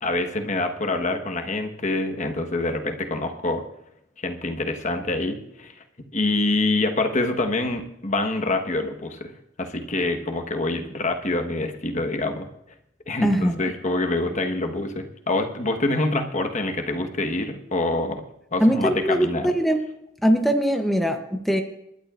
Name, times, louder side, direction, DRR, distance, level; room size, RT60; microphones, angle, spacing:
voice 1, 0.0-3.6 4.2-5.7 6.1-9.3 9.6-12.5 13.1-18.2 18.5-19.5, left 2 dB, 40° left, 5 dB, 1.2 m, -26 dB
voice 2, 13.2-13.6 18.6-19.8 20.2-21.6, equal, ahead, 3 dB, 0.7 m, -21 dB
28.0 x 12.0 x 2.5 m, 0.82 s
head